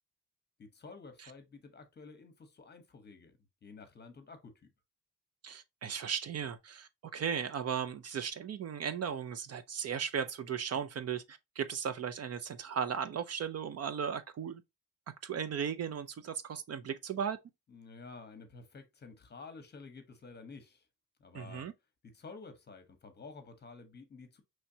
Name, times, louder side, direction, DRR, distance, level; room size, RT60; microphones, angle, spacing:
voice 1, 0.6-4.7 17.7-20.9 21.2-21.7 22.0-24.4, left 4 dB, 35° left, 0.9 m, -51 dB
voice 2, 5.4-14.6 15.2-17.4 21.3-21.7, right 7 dB, 50° right, 0.5 m, -36 dB
5.7 x 3.2 x 2.7 m
wide cardioid pair, 160°, 31 cm